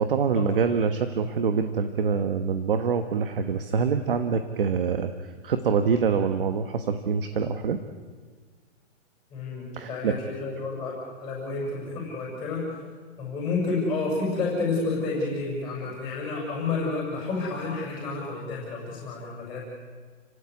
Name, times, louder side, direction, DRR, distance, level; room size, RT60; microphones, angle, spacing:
voice 1, 0.0-7.8 9.7-10.2, right 6 dB, 45° right, 8 dB, 1.4 m, -25 dB
voice 2, 9.3-12.8 13.2-19.6, left 3 dB, 5° left, -3 dB, 6.6 m, -30 dB
29.5 x 16.5 x 9.7 m, 1.5 s
hypercardioid pair, 180°, 37 cm